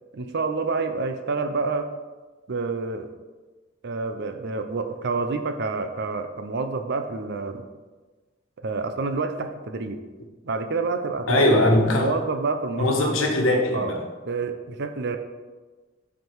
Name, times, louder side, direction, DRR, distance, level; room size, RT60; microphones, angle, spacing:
voice 1, 0.1-1.9 2.5-3.1 3.8-7.6 8.6-10.0 10.4-11.4 12.0-13.1 13.7-13.9 14.2-15.2, right 4 dB, 60° right, 8 dB, 0.6 m, -28 dB
voice 2, 11.3-12.1 12.8-14.0, left 1 dB, 75° left, 1 dB, 1.4 m, -20 dB
7.9 x 5.0 x 4.7 m, 1.3 s
head